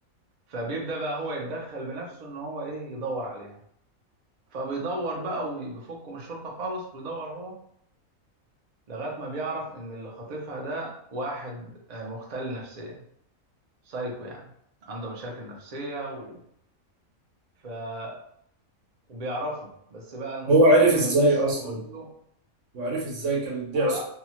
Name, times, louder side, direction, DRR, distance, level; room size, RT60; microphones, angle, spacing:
voice 1, 0.5-3.6 4.5-7.6 8.9-13.0 13.8-14.5 14.8-16.4 17.6-18.2 19.1-22.1 23.7-24.0, right 2 dB, 45° right, -2 dB, 0.6 m, -34 dB
voice 2, 20.5-21.8 22.7-24.0, right 1 dB, 65° right, -2 dB, 1.1 m, -21 dB
2.8 x 2.2 x 2.9 m, 0.71 s
omnidirectional pair, 1.4 m